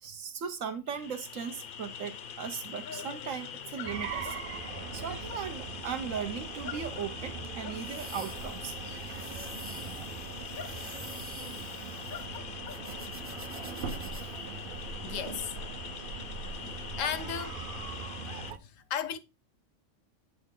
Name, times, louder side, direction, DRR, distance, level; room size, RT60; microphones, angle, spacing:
voice 1, 0.0-4.4 4.9-8.8 11.5-11.8 13.8-13.9 14.2-14.3, right 7 dB, 85° right, 1.3 m, -38 dB
sound 1, 0.9-18.5, left 7 dB, 60° left, 0.6 m, -43 dB
sound 2, 3.8-18.6, right 5 dB, 55° right, 0.7 m, -41 dB
sound 3, 6.8-14.2, right 1 dB, 15° right, 0.6 m, -49 dB
voice 2, 15.0-15.6 16.6-17.6 18.6-19.2, left 8 dB, 85° left, 1.1 m, -35 dB
8.3 x 4.2 x 3.7 m
omnidirectional pair, 1.3 m